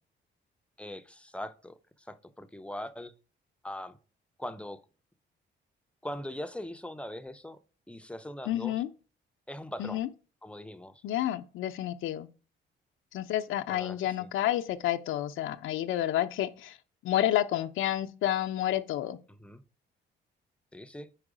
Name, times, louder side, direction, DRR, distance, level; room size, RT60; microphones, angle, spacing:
voice 1, 0.8-3.1 3.6-4.0 4.4-4.8 6.0-7.6 7.9-8.8 9.5-10.0 10.4-11.0 13.7-14.3 19.3-19.6 20.7-21.1, left 1 dB, 5° left, 0.5 m, -41 dB
voice 2, 8.5-8.9 9.8-10.1 11.0-12.3 13.1-16.8 17.0-19.2, left 12 dB, 85° left, 0.6 m, -30 dB
4.8 x 4.5 x 4.9 m
cardioid pair, 90°, 20 cm